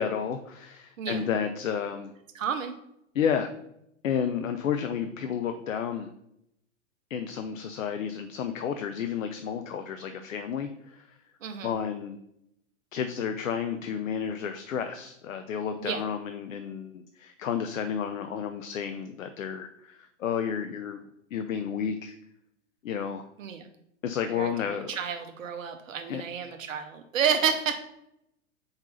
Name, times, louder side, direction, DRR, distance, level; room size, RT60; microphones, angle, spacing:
voice 1, 0.0-2.1 3.1-3.5 4.0-6.1 7.1-11.1 11.6-12.2 12.9-21.0 21.3-22.2 22.8-23.2 24.0-24.9 26.1-26.2, left 7 dB, 80° left, 8 dB, 0.6 m, -31 dB
voice 2, 2.3-2.7 11.4-11.7 15.8-16.0 23.4-23.7 24.3-27.7, right 7 dB, 80° right, 6 dB, 0.8 m, -30 dB
4.4 x 4.0 x 5.4 m, 0.79 s
hypercardioid pair, 120°, 39 cm